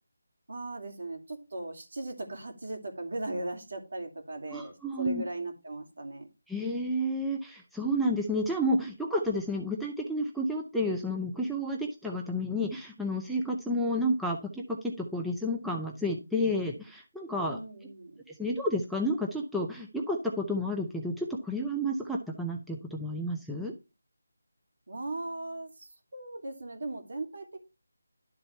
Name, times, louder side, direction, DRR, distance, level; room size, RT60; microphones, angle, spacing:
voice 1, 0.5-6.3 17.4-18.2 24.9-27.6, right 2 dB, 65° right, 4 dB, 2.7 m, -38 dB
voice 2, 4.5-5.2 6.5-17.6 18.4-23.7, equal, ahead, -2 dB, 0.6 m, -31 dB
11.5 x 4.0 x 4.5 m, 0.28 s
figure-of-eight pair, 165°, 0 cm